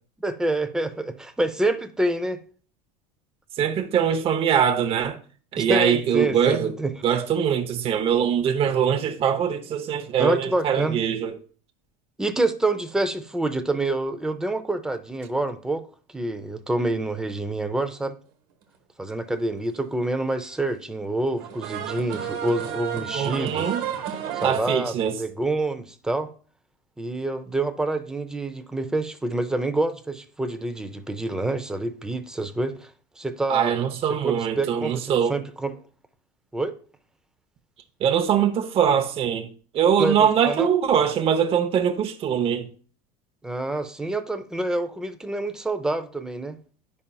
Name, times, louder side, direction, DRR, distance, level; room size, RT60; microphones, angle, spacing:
voice 1, 0.2-2.4 5.6-7.0 10.2-11.0 12.2-15.9 16.1-18.2 19.0-23.7 24.3-26.3 27.0-32.9 33.2-33.7 34.2-35.8 36.5-36.8 40.0-40.7 43.4-46.6, right 2 dB, 5° right, 0.5 m, -27 dB
voice 2, 3.6-5.2 5.5-6.7 7.0-11.3 23.1-23.8 24.4-25.2 33.5-35.4 38.0-42.7, right 8 dB, 30° right, 0.8 m, -22 dB
sound 1, 19.4-19.5 21.3-24.6, right 9 dB, 50° right, 1.2 m, -31 dB
9.9 x 5.4 x 2.3 m
supercardioid pair, 145°, 19 cm